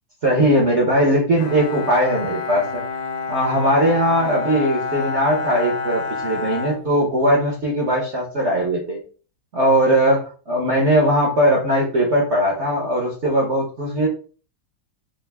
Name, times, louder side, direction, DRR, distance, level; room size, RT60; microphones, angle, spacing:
voice 1, 0.2-2.8 3.3-9.0 9.5-14.1, right 1 dB, 50° right, -2 dB, 0.8 m, -19 dB
Bowed string instrument, 1.4-7.5, left 4 dB, 70° left, 1.2 m, -28 dB
3.8 x 2.6 x 3.4 m, 0.39 s
omnidirectional pair, 2.2 m